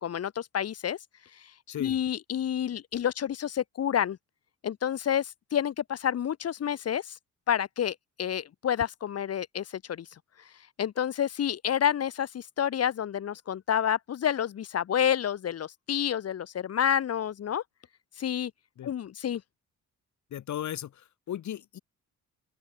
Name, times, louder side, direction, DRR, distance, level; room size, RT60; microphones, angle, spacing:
voice 1, 0.0-4.2 4.6-7.2 7.5-17.6 18.1-18.5 18.8-19.4, left 9 dB, 55° left, 1.5 m, -29 dB
voice 2, 1.7-2.0 18.8-18.9 20.3-21.8, left 11 dB, 70° left, 5.5 m, -36 dB
open air
cardioid pair, 90°, 30 cm